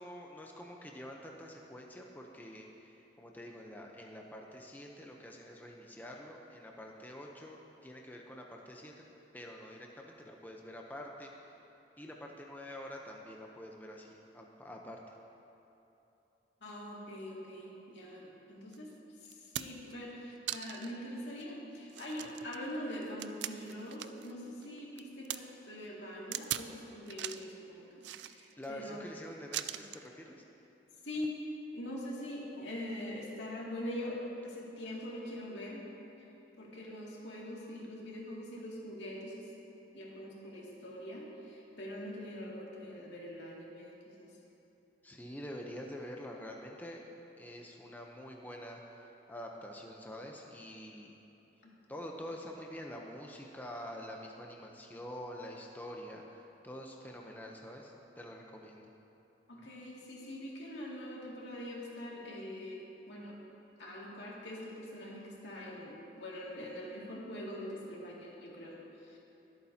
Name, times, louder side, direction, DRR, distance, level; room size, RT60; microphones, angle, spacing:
voice 1, 0.0-8.9 9.3-11.3 12.0-15.0 28.6-30.4 45.0-47.0 47.4-51.2 51.9-58.9, equal, 10° left, 0 dB, 0.7 m, -46 dB
voice 2, 16.6-18.9 19.2-29.0 31.0-31.4 31.7-35.8 36.6-39.5 39.9-44.4 59.5-63.4 63.8-69.2, left 1 dB, 85° left, -4 dB, 2.4 m, -43 dB
sound 1, 18.7-18.8 19.3-19.9 20.5-21.0 21.4-21.5 21.9-24.3 24.6-25.4 26.3-26.7 27.1-27.5 28.0-28.7 29.5-30.1 31.1-31.3, right 12 dB, 80° right, 0.4 m, -40 dB
22.5 x 8.6 x 2.8 m, 2.9 s
head